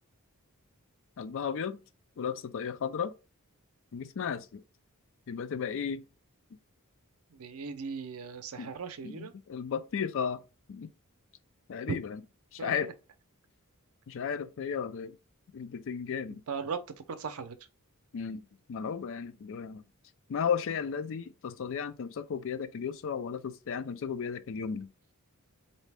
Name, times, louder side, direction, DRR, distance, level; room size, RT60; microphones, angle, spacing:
voice 1, 1.2-1.8 2.2-3.1 3.9-4.6 5.3-6.0 8.6-8.7 9.0-10.4 10.7-10.9 11.7-12.2 12.5-12.9 14.1-15.2 15.5-16.4 18.1-19.8 20.3-24.9, left 7 dB, 60° left, 0.4 m, -34 dB
voice 2, 7.3-9.3 12.6-12.7 16.5-17.6, right 5 dB, 70° right, 0.5 m, -38 dB
4.1 x 2.7 x 3.4 m
head